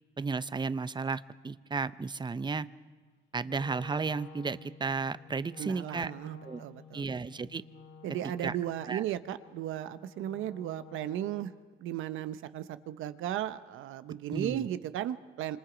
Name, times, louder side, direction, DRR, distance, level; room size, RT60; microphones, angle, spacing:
voice 1, 0.2-2.7 3.3-6.1 6.4-6.6 6.9-7.6 8.4-8.6 8.9-9.0 14.3-14.7, right 4 dB, 20° right, 15 dB, 0.7 m, -33 dB
Wind instrument woodwind instrument, 3.4-11.6, left 5 dB, 65° left, 3.1 m, -52 dB
voice 2, 5.6-7.0 8.0-11.5 11.8-15.6, right 12 dB, 85° right, 13 dB, 0.9 m, -35 dB
26.5 x 26.0 x 5.1 m, 1.4 s
cardioid pair, 90°, 20 cm